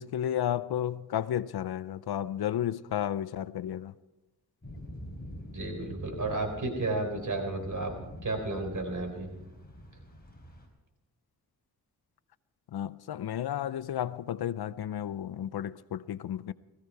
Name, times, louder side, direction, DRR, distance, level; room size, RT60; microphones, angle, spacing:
voice 1, 0.0-3.9 12.7-16.5, left 10 dB, 90° left, 0.6 m, -32 dB
sound 1, 4.6-10.7, equal, 25° left, 4.2 m, -45 dB
voice 2, 5.5-7.9 8.2-9.3, right 2 dB, 55° right, 4.0 m, -32 dB
18.0 x 15.5 x 4.7 m
wide cardioid pair, 80°, 37 cm